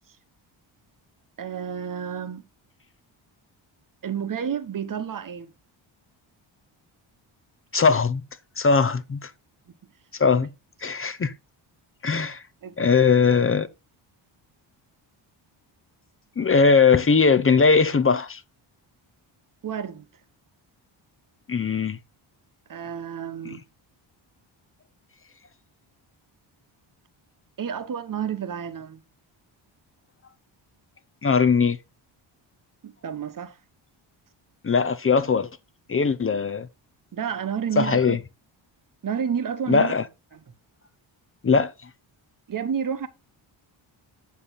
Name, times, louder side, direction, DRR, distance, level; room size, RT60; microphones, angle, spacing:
voice 1, 1.4-2.5 4.0-5.5 12.6-12.8 19.6-20.1 22.7-23.6 27.6-29.0 32.8-33.6 37.1-38.2 39.0-40.0 40.3-40.5 42.5-43.1, right 8 dB, 45° right, 1.2 m, -30 dB
voice 2, 7.7-8.2 8.6-9.3 10.2-10.5 10.8-11.3 12.0-12.4 12.8-13.7 16.4-18.4 21.5-22.0 31.2-31.8 34.6-35.5 35.9-36.7 37.8-38.2 39.7-40.0 41.4-41.7, left 5 dB, 30° left, 0.7 m, -20 dB
8.6 x 7.1 x 4.1 m
cardioid pair, 115°, 47 cm